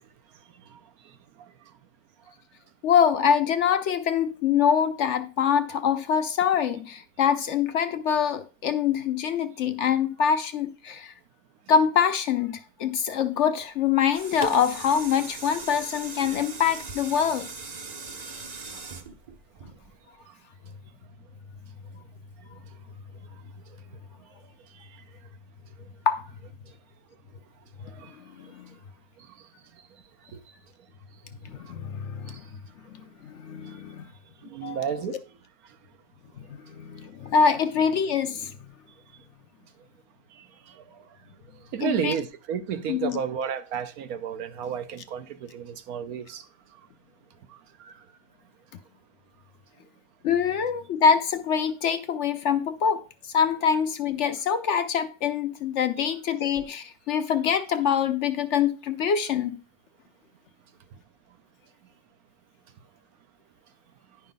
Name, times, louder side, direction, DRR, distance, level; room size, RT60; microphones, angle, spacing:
voice 1, 2.8-11.1 11.7-17.5 26.1-26.3 27.8-27.9 28.4-28.7 31.4-32.4 33.2-34.0 34.6-35.2 36.4-38.7 41.8-42.1 42.9-43.2 50.2-59.6, left 7 dB, 65° left, 0.8 m, -25 dB
sound 1, 13.8-20.2 20.7-20.8, right 3 dB, 35° right, 0.7 m, -39 dB
voice 2, 34.4-35.2 41.7-46.4 47.8-47.9 56.0-56.1, right 8 dB, 80° right, 1.2 m, -31 dB
10.0 x 5.5 x 3.9 m
omnidirectional pair, 1.5 m